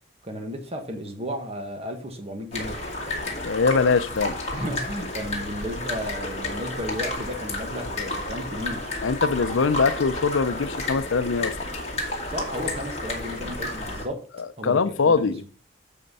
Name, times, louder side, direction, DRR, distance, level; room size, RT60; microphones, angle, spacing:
voice 1, 0.2-2.8 4.5-8.9 12.3-14.2 14.6-15.5, equal, 30° right, 1.3 m, -34 dB
Sewer Soundscape A, 2.5-14.1, left 2 dB, 35° left, 1.9 m, -31 dB
voice 2, 3.4-4.4 9.0-11.5 14.4-15.4, left 4 dB, 80° left, 0.5 m, -22 dB
7.8 x 4.4 x 5.4 m
head